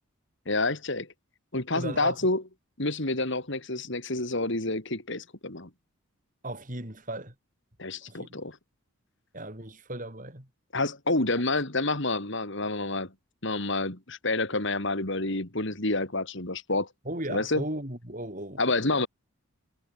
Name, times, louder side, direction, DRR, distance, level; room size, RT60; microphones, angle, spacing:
voice 1, 0.5-1.1 1.5-2.4 2.8-5.7 7.8-8.6 10.7-13.1 13.4-16.9 17.3-17.6 18.6-19.1, left 2 dB, 55° left, 3.0 m, -28 dB
voice 2, 1.7-2.3 6.4-7.3 8.1-8.4 9.3-10.5 17.0-19.0, right 1 dB, 35° right, 5.9 m, -37 dB
head